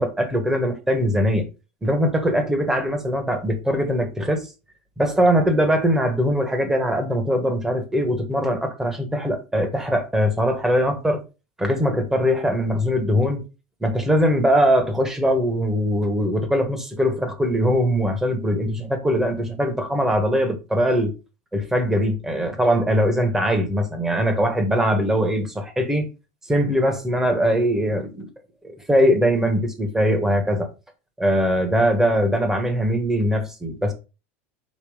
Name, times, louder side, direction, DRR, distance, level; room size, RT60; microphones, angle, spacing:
voice 1, 0.0-1.5 1.8-4.5 5.0-11.2 11.6-13.4 13.8-21.1 21.5-26.1 26.4-28.3 28.6-30.7 31.2-33.9, equal, 5° right, 1.3 m, -21 dB
5.3 x 4.2 x 5.4 m
supercardioid pair, 160°, 7 cm